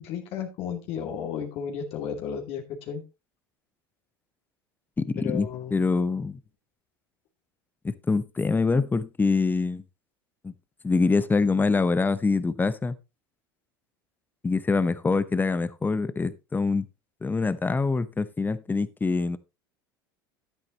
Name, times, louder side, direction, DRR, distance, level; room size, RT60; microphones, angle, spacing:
voice 1, 0.0-3.0 5.2-5.9, left 7 dB, 55° left, 2.6 m, -33 dB
voice 2, 5.0-6.4 7.8-9.8 10.4-10.5 10.8-13.0 14.4-16.9 17.2-19.4, left 4 dB, 15° left, 0.9 m, -25 dB
12.0 x 10.0 x 3.0 m
hypercardioid pair, 80°, 12 cm